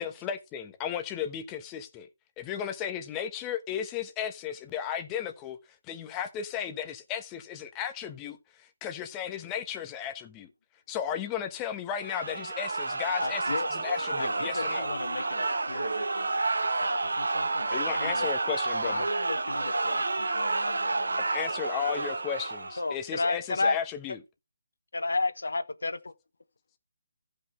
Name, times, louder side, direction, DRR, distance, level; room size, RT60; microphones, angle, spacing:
voice 1, 0.0-2.1 2.4-5.6 5.8-10.5 10.9-13.4 13.7-14.9 17.7-19.0 21.3-24.2, left 9 dB, 15° left, 1.1 m, -35 dB
sound 1, 12.0-22.9, right 3 dB, 85° right, 1.2 m, -30 dB
voice 2, 13.2-13.7 14.2-16.3 16.6-18.3 18.8-21.3, left 4 dB, 70° left, 1.5 m, -39 dB
voice 3, 22.8-23.8 24.9-26.1, left 3 dB, 90° left, 1.1 m, -28 dB
14.5 x 5.5 x 3.3 m
hypercardioid pair, 160°, 0 cm